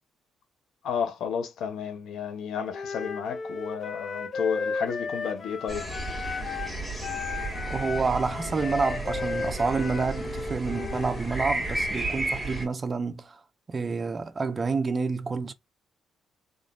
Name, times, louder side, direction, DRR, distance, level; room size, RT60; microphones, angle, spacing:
voice 1, 0.8-5.9, left 7 dB, 75° left, 0.6 m, -32 dB
Wind instrument woodwind instrument, 2.7-6.7 7.0-11.2, left 4 dB, 45° left, 1.1 m, -35 dB
sound 1, 5.7-12.7, right 2 dB, 5° left, 1.6 m, -33 dB
voice 2, 7.7-13.4 13.7-15.5, right 4 dB, 35° right, 0.4 m, -28 dB
3.7 x 2.5 x 2.3 m
cardioid pair, 90°, 0 cm